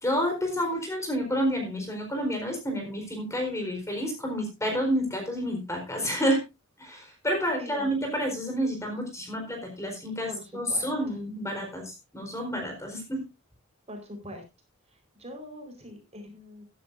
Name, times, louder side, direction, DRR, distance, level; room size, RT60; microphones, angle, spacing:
voice 1, 0.0-6.4 6.8-13.2, equal, 15° left, 3 dB, 4.2 m, -29 dB
voice 2, 7.5-8.2 10.3-11.2 13.9-14.4 14.9-16.6, equal, 30° right, 4 dB, 4.4 m, -43 dB
15.0 x 12.0 x 2.6 m, 0.25 s
head